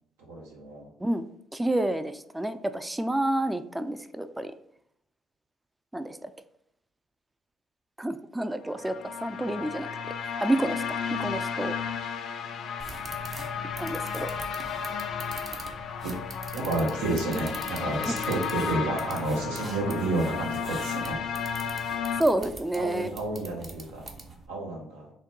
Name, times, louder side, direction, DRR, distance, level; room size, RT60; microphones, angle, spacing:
voice 1, 0.3-0.9 16.0-16.1 16.5-21.2 22.7-24.1 24.5-25.1, right 2 dB, 85° right, -1 dB, 0.9 m, -30 dB
voice 2, 1.5-4.5 5.9-6.3 8.0-9.9 10.4-11.7 13.8-14.3 18.0-18.2 22.2-23.1, right 1 dB, 10° right, 11 dB, 0.3 m, -29 dB
sound 1, 8.7-22.2, left 6 dB, 60° left, 0.4 m, -33 dB
sound 2, 12.8-24.5, right 3 dB, 40° right, 0.7 m, -44 dB
3.6 x 2.2 x 3.7 m, 0.74 s
hypercardioid pair, 60°, 0 cm